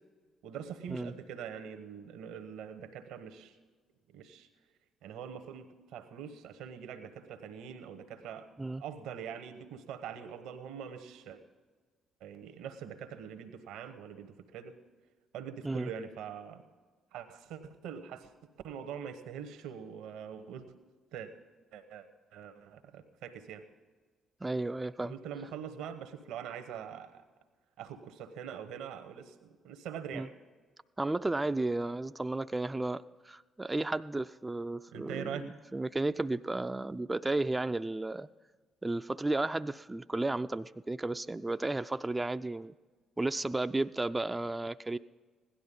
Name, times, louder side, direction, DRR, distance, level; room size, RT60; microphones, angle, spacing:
voice 1, 0.4-3.6 4.1-4.5 5.0-8.5 8.8-11.4 12.2-14.8 15.3-16.6 17.1-18.3 18.6-20.7 21.1-21.3 21.7-22.1 22.3-23.6 25.0-27.2 27.8-30.3 34.9-35.5, right 8 dB, 75° right, 9 dB, 1.0 m, -43 dB
voice 2, 24.4-25.1 30.1-30.3 31.0-38.3 38.8-42.7 43.2-45.0, right 2 dB, 20° right, 10 dB, 0.4 m, -33 dB
16.5 x 11.5 x 5.5 m, 1.4 s
hypercardioid pair, 50°, 0 cm